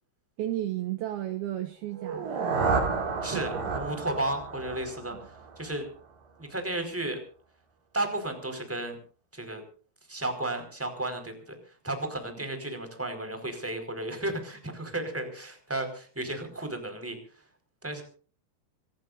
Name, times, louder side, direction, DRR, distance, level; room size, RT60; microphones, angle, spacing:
voice 1, 0.4-2.5 3.2-3.8 5.1-5.2, right 13 dB, 75° right, 8 dB, 2.3 m, -34 dB
sound 1, 1.9-5.9, right 4 dB, 50° right, 4.8 m, -31 dB
voice 2, 3.2-5.2 5.6-5.9 6.4-7.2 7.9-9.0 9.3-9.6 10.1-11.6 11.8-17.2 17.8-18.0, right 1 dB, 5° right, 6 dB, 4.0 m, -33 dB
26.0 x 18.5 x 2.6 m, 0.41 s
omnidirectional pair, 6.0 m